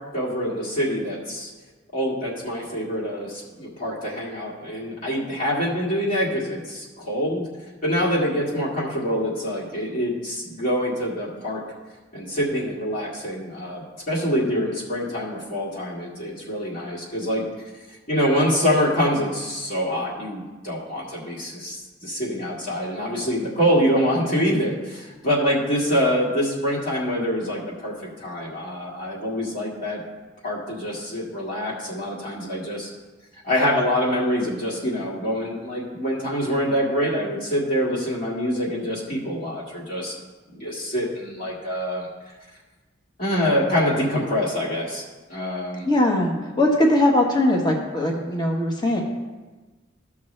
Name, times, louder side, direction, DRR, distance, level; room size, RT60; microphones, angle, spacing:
voice 1, 0.1-1.5 1.9-7.5 7.8-11.6 12.1-17.4 18.1-30.0 30.4-32.9 33.4-40.1 40.5-42.1 43.2-45.0 45.3-45.8, equal, 50° left, -6 dB, 2.0 m, -25 dB
voice 2, 45.8-49.0, left 1 dB, 25° left, 0 dB, 1.2 m, -20 dB
14.5 x 5.9 x 3.3 m, 1.2 s
head